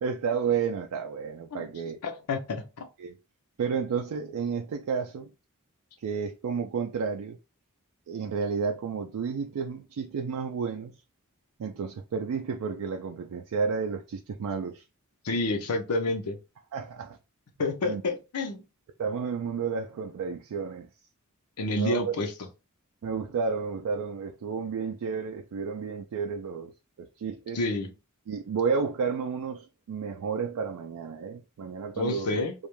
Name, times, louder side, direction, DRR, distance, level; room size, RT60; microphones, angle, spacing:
voice 1, 0.0-2.0 3.0-3.2 3.6-5.3 6.0-7.4 8.1-10.9 11.6-14.8 16.7-17.2 17.8-18.0 19.0-20.9 21.7-22.2 23.0-26.7 27.0-27.6 28.3-32.4, right 5 dB, 85° right, 0.3 m, -31 dB
voice 2, 2.0-2.9 15.2-16.4 17.6-18.6 21.6-22.3 27.5-27.9 32.0-32.5, left 2 dB, 85° left, 0.6 m, -29 dB
2.3 x 2.1 x 3.0 m
head